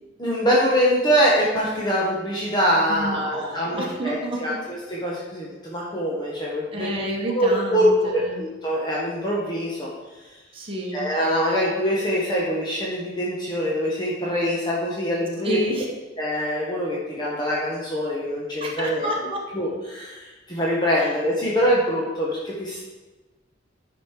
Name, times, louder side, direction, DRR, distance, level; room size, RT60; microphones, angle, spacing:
voice 1, 0.2-6.9 7.3-9.9 10.2-10.3 10.9-15.6 16.2-19.1 19.5-22.8, equal, 25° left, -5 dB, 1.3 m, -24 dB
voice 2, 2.9-4.6 6.7-8.4 10.5-11.1 15.4-15.9 18.6-19.4 21.0-21.1, right 1 dB, 30° right, -3 dB, 1.6 m, -29 dB
10.0 x 5.3 x 4.8 m, 1.2 s
head